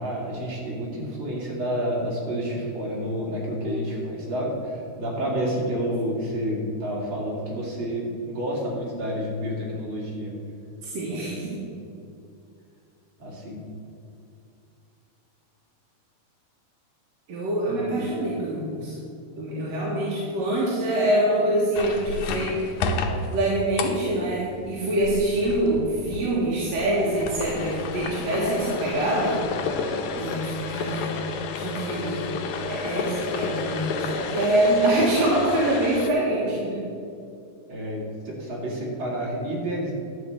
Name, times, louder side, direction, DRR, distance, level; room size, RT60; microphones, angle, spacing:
voice 1, 0.0-10.3 11.1-11.6 13.2-13.6 17.6-18.1 36.4-36.6 37.7-39.9, equal, 35° right, -4 dB, 2.5 m, -30 dB
voice 2, 10.8-11.6 17.3-19.0 19.4-22.9 23.3-29.4 29.7-31.2 31.6-36.8, right 1 dB, 55° right, -6 dB, 2.1 m, -25 dB
sound 1, 21.7-36.1, left 4 dB, 80° left, 1.8 m, -31 dB
11.5 x 5.0 x 7.8 m, 2.5 s
omnidirectional pair, 4.3 m